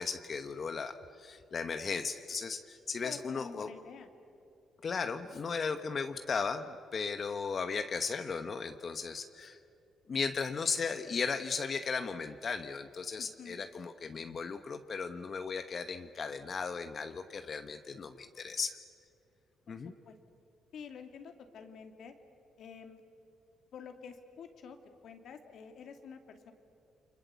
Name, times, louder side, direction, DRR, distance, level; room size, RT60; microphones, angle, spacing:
voice 1, 0.0-3.7 4.8-9.6 10.1-18.8 19.7-19.9, left 5 dB, 45° left, 9 dB, 1.1 m, -36 dB
voice 2, 3.0-4.1 13.2-13.6 19.7-20.1 20.7-22.1 22.6-23.0 23.7-24.8 25.0-26.5, left 6 dB, 65° left, 6 dB, 2.5 m, -48 dB
29.5 x 24.0 x 8.2 m, 2.7 s
cardioid pair, 90°, 0 cm